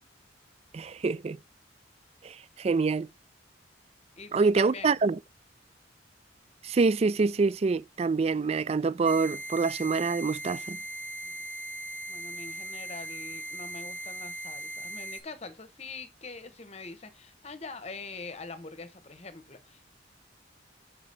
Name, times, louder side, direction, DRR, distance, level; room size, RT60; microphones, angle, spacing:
voice 1, 0.7-1.4 2.2-3.1 4.3-5.2 6.6-10.8, right 4 dB, 35° right, 0.3 m, -26 dB
voice 2, 4.2-4.9 11.2-11.4 12.1-19.9, left 3 dB, 35° left, 1.0 m, -44 dB
sound 1, 9.0-15.2, right 1 dB, 10° left, 1.3 m, -39 dB
5.9 x 5.0 x 4.0 m
head